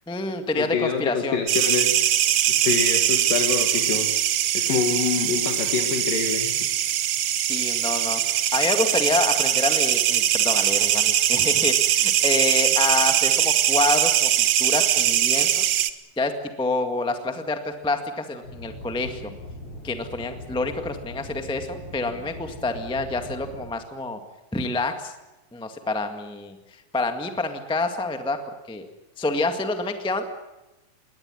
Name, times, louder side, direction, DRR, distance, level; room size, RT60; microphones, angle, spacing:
voice 1, 0.1-1.4 7.3-15.6 16.2-19.3 19.8-24.2 24.5-25.1 25.5-26.6 26.9-28.4 28.7-28.9 29.2-30.3, left 2 dB, 5° left, 6 dB, 0.7 m, -27 dB
voice 2, 0.6-2.0 2.5-4.1 4.5-6.7, left 6 dB, 75° left, 4 dB, 3.5 m, -26 dB
sound 1, 1.5-15.9, right 11 dB, 70° right, 1.5 m, -21 dB
sound 2, 18.4-23.7, left 1 dB, 45° left, 7.9 m, -40 dB
21.5 x 18.5 x 9.8 m, 1.0 s
omnidirectional pair, 3.9 m